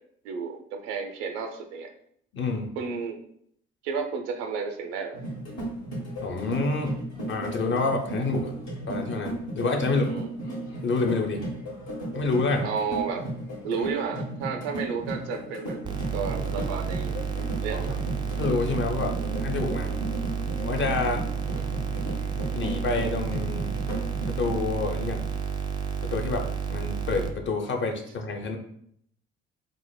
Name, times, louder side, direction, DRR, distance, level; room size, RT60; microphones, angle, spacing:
voice 1, 0.2-1.9 2.8-3.2 3.8-5.2 9.9-10.3 12.6-13.2 13.6-17.2 17.6-18.0 19.2-19.3 21.5-21.6, right 5 dB, 65° right, 4 dB, 0.5 m, -32 dB
voice 2, 2.3-2.8 6.2-7.0 7.3-8.5 8.9-10.1 10.8-11.5 12.1-12.7 17.7-17.8 18.4-19.9 20.6-21.2 22.5-23.7 24.3-25.3 26.0-28.6, left 3 dB, 35° left, 3 dB, 0.6 m, -28 dB
sound 1, 5.1-24.6, right 1 dB, 65° left, 1.2 m, -35 dB
sound 2, 15.8-27.3, right 7 dB, 15° right, 0.3 m, -31 dB
4.8 x 2.0 x 2.2 m, 0.67 s
figure-of-eight pair, 50°, 33 cm